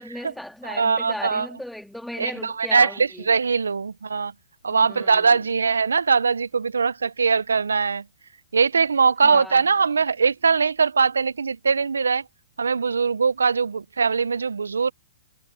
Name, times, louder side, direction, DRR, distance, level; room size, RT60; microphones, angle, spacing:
voice 1, 0.0-3.3 4.7-5.4 9.2-9.7, left 1 dB, ahead, 3.0 m, -37 dB
voice 2, 0.6-1.5 2.2-4.3 4.6-8.0 8.5-12.2 12.6-14.9, right 5 dB, 85° right, 0.4 m, -21 dB
hypercardioid pair, 120°, 0 cm